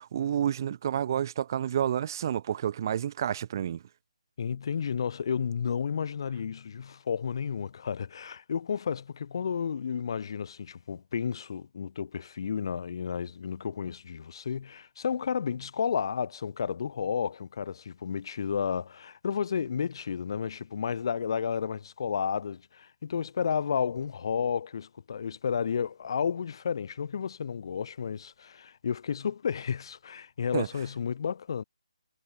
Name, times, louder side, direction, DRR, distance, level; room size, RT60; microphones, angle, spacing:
voice 1, 0.0-3.8 30.5-30.7, right 9 dB, 35° right, 2.7 m, -29 dB
voice 2, 4.4-31.6, left 7 dB, 45° left, 2.9 m, -32 dB
figure-of-eight pair, 150°, 3 cm